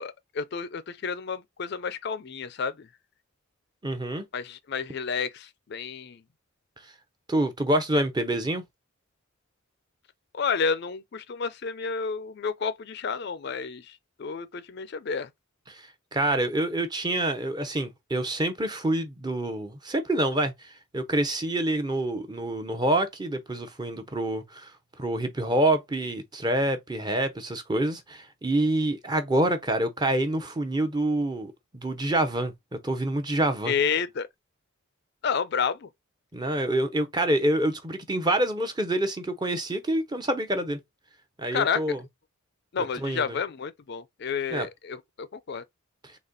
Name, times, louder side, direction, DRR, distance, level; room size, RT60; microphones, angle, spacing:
voice 1, 0.0-2.9 4.3-6.2 10.3-15.3 33.6-34.3 35.2-35.9 41.5-42.0 42.7-45.6, left 6 dB, 50° left, 0.4 m, -30 dB
voice 2, 3.8-4.2 7.3-8.6 15.7-15.8 16.1-24.7 25.0-33.7 36.3-40.8 41.4-42.0 43.0-43.4 44.5-44.7, right 1 dB, 20° right, 0.6 m, -27 dB
4.1 x 2.9 x 3.8 m
head